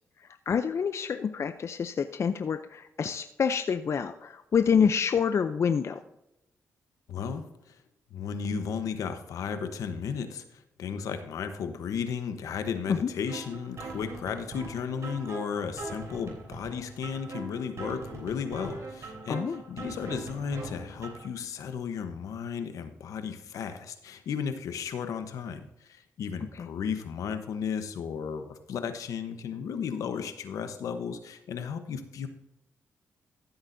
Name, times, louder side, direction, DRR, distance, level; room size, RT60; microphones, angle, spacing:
voice 1, 0.5-6.0 12.9-13.1 19.3-19.6 26.5-26.7, left 6 dB, 55° left, 9 dB, 0.5 m, -27 dB
voice 2, 7.1-7.8 8.1-19.4 19.7-32.3, left 6 dB, 80° left, 9 dB, 1.0 m, -34 dB
sound 1, 13.3-21.3, right 3 dB, 60° right, 3.4 m, -41 dB
14.5 x 8.0 x 2.7 m, 0.88 s
cardioid pair, 60°, 6 cm